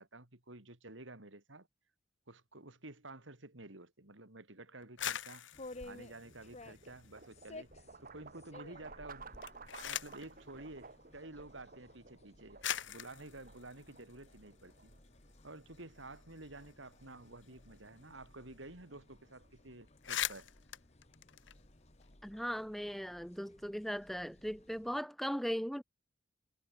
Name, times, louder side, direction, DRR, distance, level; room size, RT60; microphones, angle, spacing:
voice 1, 0.0-1.7 2.3-5.5 5.8-7.7 8.0-9.4 9.8-12.6 12.9-14.9 15.4-20.5, right 2 dB, 70° right, 3.6 m, -51 dB
sound 1, 4.8-7.4 7.8-8.4 9.2-10.3 11.4-11.5 12.2-12.3 12.6-14.9 15.3-15.4 15.6-18.3 18.5-18.6 18.9-19.2 19.5-19.6 19.9-22.1, left 11 dB, 65° left, 1.0 m, -43 dB
sound 2, 5.5-25.0, left 2 dB, 35° left, 2.3 m, -57 dB
sound 3, 5.5-19.6, right 4 dB, 45° right, 4.1 m, -57 dB
voice 2, 22.2-25.8, equal, ahead, 1.7 m, -38 dB
head